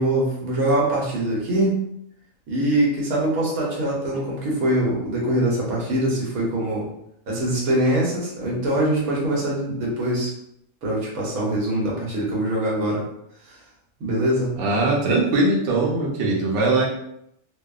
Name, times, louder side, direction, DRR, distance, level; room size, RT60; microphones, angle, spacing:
voice 1, 0.0-1.8 2.5-6.9 7.3-10.3 10.8-13.0 13.5-13.6 14.0-14.5, right 1 dB, 85° right, -4 dB, 1.3 m, -23 dB
voice 2, 14.6-16.8, right 2 dB, 65° right, -3 dB, 0.9 m, -20 dB
2.7 x 2.0 x 2.3 m, 0.76 s
omnidirectional pair, 1.5 m